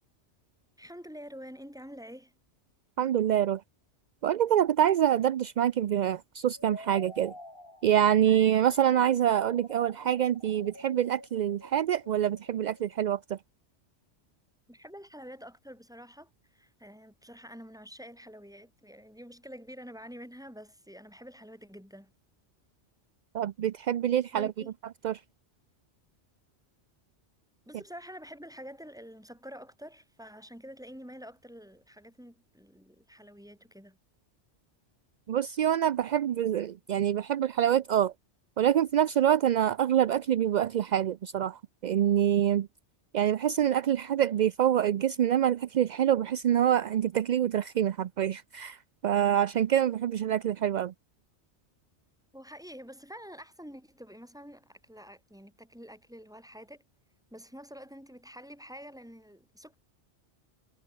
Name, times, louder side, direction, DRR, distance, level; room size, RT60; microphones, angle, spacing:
voice 1, 0.8-2.4 14.7-22.1 24.3-24.7 27.6-34.0 52.3-56.8 57.3-59.7, equal, 5° right, 4.1 m, -47 dB
voice 2, 3.0-3.6 4.2-7.3 7.8-13.4 23.3-24.5 25.0-25.2 35.3-38.1 38.6-42.7 43.1-48.8 49.0-50.9, right 10 dB, 60° right, 0.5 m, -26 dB
sound 1, 6.5-13.2, left 1 dB, 55° left, 6.9 m, -50 dB
omnidirectional pair, 1.2 m